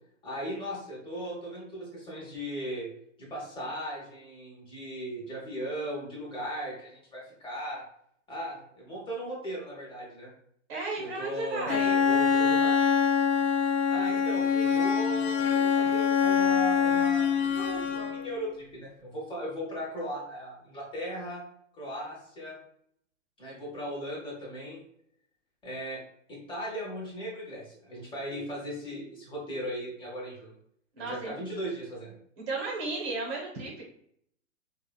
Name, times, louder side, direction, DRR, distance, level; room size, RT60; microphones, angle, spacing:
voice 1, 0.2-2.9 3.2-7.8 8.3-10.3 11.0-12.8 13.9-21.4 21.8-22.6 23.4-24.8 25.6-26.0 26.3-30.6 31.0-32.1, equal, 15° left, -4 dB, 1.0 m, -37 dB
voice 2, 10.7-12.0 31.0-31.3 32.5-33.8, right 3 dB, 50° right, -2 dB, 0.9 m, -34 dB
Bowed string instrument, 11.7-18.4, left 6 dB, 65° left, 0.5 m, -25 dB
2.9 x 2.4 x 2.2 m, 0.68 s
hypercardioid pair, 120°, 38 cm